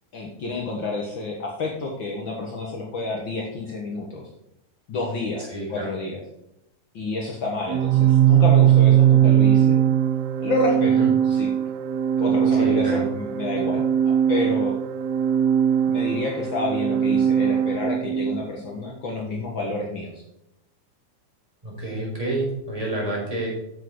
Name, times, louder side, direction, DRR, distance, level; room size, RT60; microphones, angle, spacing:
voice 1, 0.1-4.2 4.9-6.2 6.9-9.8 10.4-11.5 12.2-14.8 15.9-20.2, left 3 dB, 75° left, 0 dB, 1.1 m, -29 dB
voice 2, 5.5-5.9 10.8-11.1 12.5-13.1 21.6-23.5, right 1 dB, 10° right, -4 dB, 4.4 m, -29 dB
Organ, 7.7-18.4, right 10 dB, 85° right, 2.6 m, -20 dB
10.5 x 7.3 x 4.7 m, 0.85 s
omnidirectional pair, 4.4 m